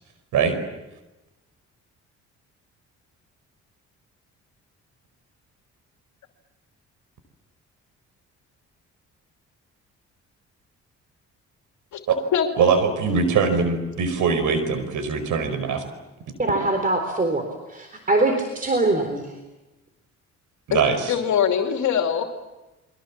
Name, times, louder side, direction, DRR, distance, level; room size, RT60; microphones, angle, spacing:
voice 1, 12.6-15.8 20.7-21.1, right 5 dB, 80° right, 9 dB, 5.0 m, -22 dB
voice 2, 16.4-19.4, right 2 dB, 30° right, 5 dB, 4.0 m, -23 dB
voice 3, 21.1-22.2, left 8 dB, 70° left, 5 dB, 2.8 m, -22 dB
30.0 x 23.5 x 7.4 m, 1.0 s
cardioid pair, 90°, 30 cm